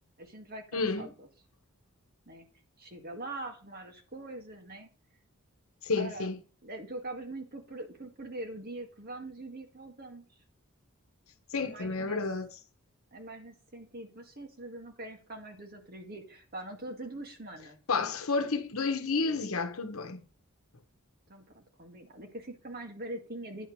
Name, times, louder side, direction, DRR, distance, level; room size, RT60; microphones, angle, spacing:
voice 1, 0.2-1.3 2.3-2.5 2.8-4.9 6.0-6.3 6.6-10.3 11.6-12.2 13.1-17.8 21.3-23.7, right 2 dB, 45° right, 1.9 m, -43 dB
voice 2, 0.7-1.1 5.8-6.4 11.5-12.6 17.9-20.2, left 4 dB, 70° left, 1.0 m, -31 dB
10.0 x 4.6 x 6.0 m
head